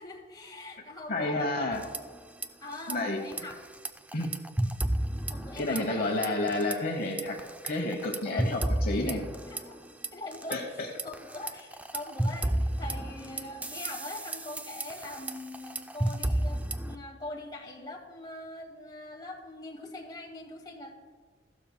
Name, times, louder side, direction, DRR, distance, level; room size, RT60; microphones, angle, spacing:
voice 1, 0.0-1.7 2.6-3.6 5.3-6.1 9.5-9.8 10.1-10.6 11.0-20.9, left 2 dB, 25° left, -1 dB, 1.8 m, -42 dB
voice 2, 1.1-1.8 2.9-3.2 4.1-4.3 5.6-7.4 7.6-9.2 10.5-10.9, left 2 dB, 55° left, 2 dB, 1.0 m, -30 dB
sound 1, 1.7-2.5 2.7-2.9 3.3-6.0 6.2-6.8 7.2-10.6 11.0-17.0, right 1 dB, 10° right, 0.3 m, -32 dB
15.0 x 12.0 x 2.2 m, 1.5 s
head